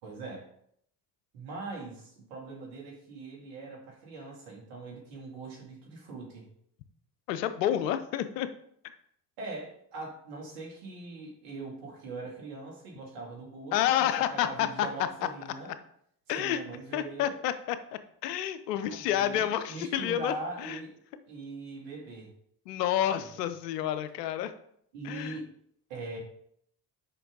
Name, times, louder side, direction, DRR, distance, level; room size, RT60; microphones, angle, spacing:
voice 1, 0.0-0.5 1.3-6.5 9.4-15.7 16.3-17.4 18.8-21.0 21.3-22.3 23.2-23.4 24.9-25.5 25.9-26.2, right 3 dB, 75° right, -2 dB, 2.3 m, -41 dB
voice 2, 7.3-8.5 13.7-14.9 16.3-16.6 16.9-17.8 18.2-20.8 22.7-24.5 25.0-25.4, left 11 dB, 85° left, 12 dB, 0.7 m, -29 dB
6.6 x 5.3 x 3.8 m, 0.68 s
hypercardioid pair, 55°, 47 cm